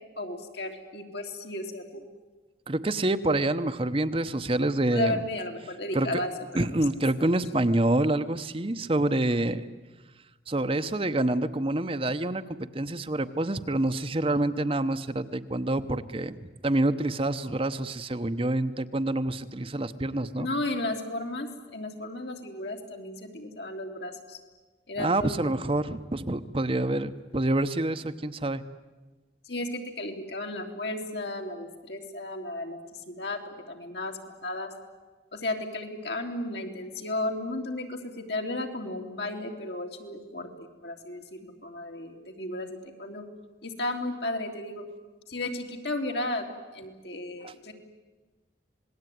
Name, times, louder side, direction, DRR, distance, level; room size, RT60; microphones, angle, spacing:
voice 1, 0.2-2.0 4.9-6.3 7.2-7.3 20.4-24.4 24.9-25.3 29.4-34.7 35.3-43.2 43.6-44.9 45.3-46.4 46.7-47.7, left 2 dB, 70° left, 3 dB, 3.3 m, -34 dB
voice 2, 2.7-5.2 5.9-6.2 6.5-9.6 10.5-12.4 12.7-20.5 25.0-28.6 47.4-47.5, right 1 dB, 30° right, 10 dB, 0.9 m, -27 dB
27.0 x 20.0 x 9.4 m, 1.2 s
head